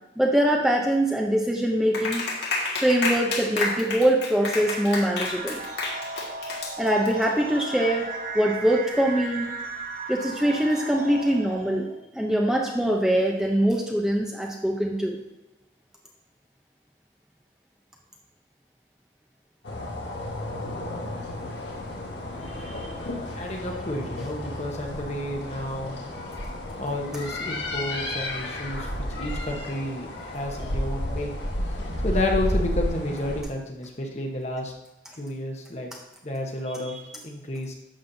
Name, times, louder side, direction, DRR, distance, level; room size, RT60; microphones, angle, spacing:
voice 1, 0.2-2.3 2.8-5.6 6.8-8.1 8.3-9.5 10.1-15.2 36.9-37.0, right 1 dB, 5° right, -1 dB, 0.7 m, -23 dB
Clapping, 1.9-7.2, left 3 dB, 70° left, 1.8 m, -29 dB
sound 1, 4.3-11.9, right 2 dB, 50° right, 0.9 m, -36 dB
sound 2, 19.6-33.4, left 1 dB, 90° left, 1.6 m, -32 dB
voice 2, 22.2-26.0 26.8-31.3 32.0-34.7 35.2-35.9 36.2-37.0 37.2-37.7, left 1 dB, 40° left, 2 dB, 1.1 m, -31 dB
11.5 x 7.3 x 2.7 m, 0.97 s
head